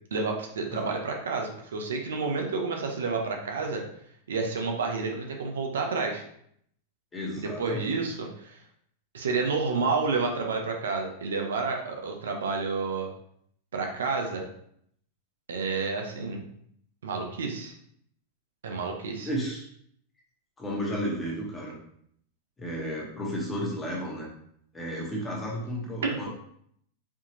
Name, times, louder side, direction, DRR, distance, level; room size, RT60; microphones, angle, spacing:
voice 1, 0.1-3.8 4.3-6.2 7.4-8.6 9.1-13.1 13.7-14.4 15.5-16.4 17.0-17.7 18.6-19.3 26.0-26.2, right 4 dB, 90° right, 2 dB, 0.8 m, -30 dB
voice 2, 7.1-8.0 19.2-19.6 20.6-21.8 22.6-24.3 24.7-26.3, equal, 15° left, -3 dB, 1.4 m, -33 dB
4.7 x 2.8 x 2.9 m, 0.68 s
hypercardioid pair, 125°, 0 cm